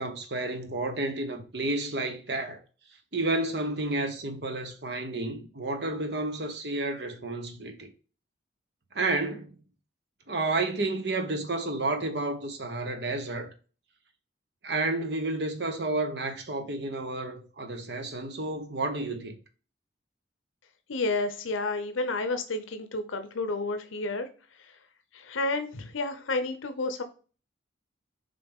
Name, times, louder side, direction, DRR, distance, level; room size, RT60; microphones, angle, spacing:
voice 1, 0.0-2.6 3.1-7.9 8.9-9.5 10.3-13.5 14.6-19.3, right 2 dB, 55° right, 1.1 m, -31 dB
voice 2, 20.9-24.3 24.6-24.7 25.1-27.0, left 2 dB, 90° left, 0.7 m, -30 dB
6.9 x 3.9 x 3.6 m
head